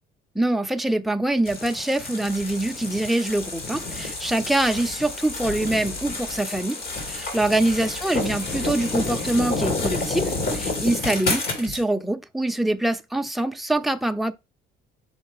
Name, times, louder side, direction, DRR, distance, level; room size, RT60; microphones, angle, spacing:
voice 1, 0.3-6.8 7.1-14.3, right 1 dB, ahead, 0.5 m, -24 dB
sound 1, 1.4-11.8, left 3 dB, 75° left, 2.9 m, -29 dB
6.3 x 4.8 x 3.5 m
cardioid pair, 110°, 17 cm